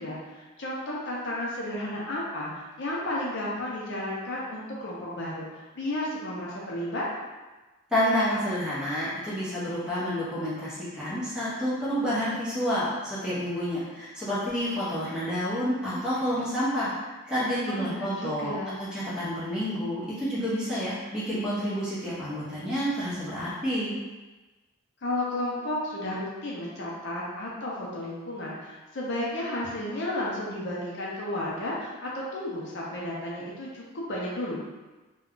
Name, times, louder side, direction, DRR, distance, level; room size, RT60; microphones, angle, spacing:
voice 1, 0.0-7.0 17.7-18.8 25.0-34.6, left 1 dB, 55° left, -5 dB, 0.5 m, -33 dB
voice 2, 7.9-16.9 17.2-23.9, equal, 5° right, -11 dB, 0.8 m, -29 dB
2.4 x 2.2 x 3.6 m, 1.2 s
head